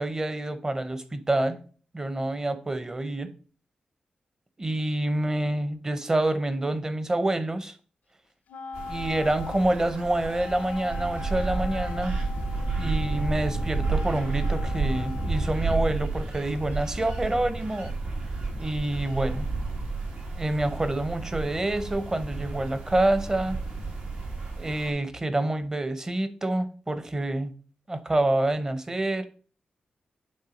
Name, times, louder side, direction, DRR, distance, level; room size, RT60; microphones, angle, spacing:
voice 1, 0.0-1.6 1.9-3.3 4.6-7.7 8.9-12.2 12.7-17.9 18.6-19.5 20.4-23.6 24.6-27.5 27.9-29.3, right 1 dB, 20° right, 12 dB, 0.8 m, -27 dB
Wind instrument woodwind instrument, 8.5-16.1, left 5 dB, 80° left, 0.6 m, -40 dB
sound 1, 8.7-24.9, right 3 dB, 85° right, 2.1 m, -31 dB
8.7 x 3.6 x 5.1 m, 0.41 s
wide cardioid pair, 105°, 3 cm